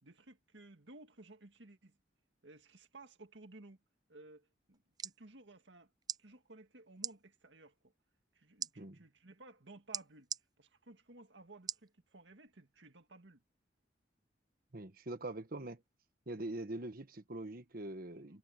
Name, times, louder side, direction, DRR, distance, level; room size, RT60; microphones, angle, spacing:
voice 1, 0.0-2.0 2.4-3.8 4.1-5.9 6.2-7.9 8.3-10.3 10.6-13.4 18.1-18.4, right 2 dB, 75° right, 2.0 m, -57 dB
sound 1, 4.7-5.2 6.0-6.2 7.0-7.1 8.6-8.7 9.9-10.4 11.7-11.9 12.5-12.6, right 8 dB, 20° right, 0.4 m, -39 dB
voice 2, 14.7-15.8 16.3-18.4, right 2 dB, 55° right, 1.3 m, -43 dB
head